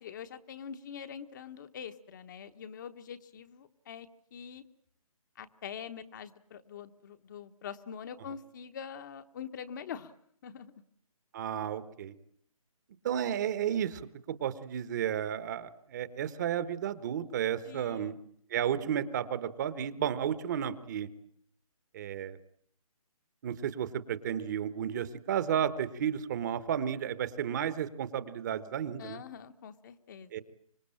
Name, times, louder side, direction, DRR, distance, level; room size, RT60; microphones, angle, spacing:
voice 1, 0.0-4.6 5.4-10.1 10.4-10.7 17.6-18.2 29.0-30.4, left 7 dB, 30° left, 9 dB, 1.1 m, -44 dB
voice 2, 11.3-12.1 13.0-18.2 18.5-21.1 21.9-22.4 23.4-29.2 30.3-30.4, right 9 dB, 30° right, 14 dB, 1.2 m, -32 dB
25.5 x 21.5 x 8.8 m, 0.65 s
hypercardioid pair, 160°, 18 cm